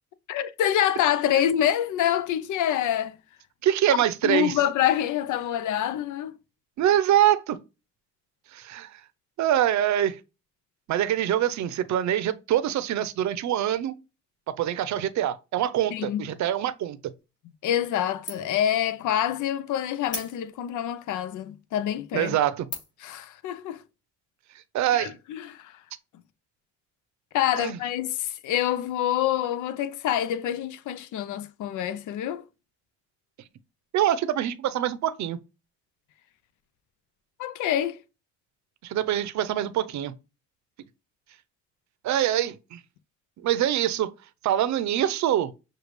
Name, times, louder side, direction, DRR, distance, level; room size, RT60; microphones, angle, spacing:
voice 1, 0.3-3.1 4.2-6.3 15.9-16.2 17.6-22.4 23.0-23.8 25.0-25.7 27.3-32.4 37.4-38.0, left 11 dB, 80° left, 0.6 m, -26 dB
voice 2, 3.6-4.6 6.8-7.6 8.5-8.9 9.4-10.2 10.9-13.9 14.5-17.0 22.1-22.7 24.7-25.1 27.6-27.8 33.9-35.4 38.8-40.1 42.0-42.8 43.4-44.1 44.4-45.5, right 11 dB, 70° right, 0.6 m, -24 dB
sound 1, 17.7-18.0 18.3-18.7 19.1-19.2 20.0-20.8 21.4-21.5 22.0-22.3 22.7-23.1, left 2 dB, 25° left, 2.8 m, -37 dB
6.5 x 2.3 x 3.1 m
cardioid pair, 90°, 30 cm